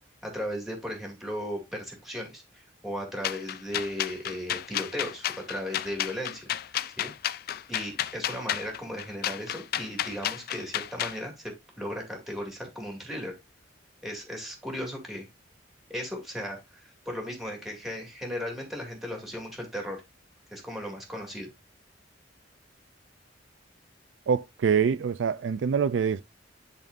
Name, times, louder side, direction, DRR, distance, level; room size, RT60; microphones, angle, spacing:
voice 1, 0.2-6.5 7.0-7.1 7.7-13.3 14.0-15.3 15.9-20.0 20.5-21.5, equal, ahead, 2.2 m, -36 dB
sound 1, 3.2-11.2, left 11 dB, 55° left, 0.3 m, -31 dB
voice 2, 24.3-26.2, right 6 dB, 80° right, 0.4 m, -25 dB
10.5 x 4.0 x 2.5 m
head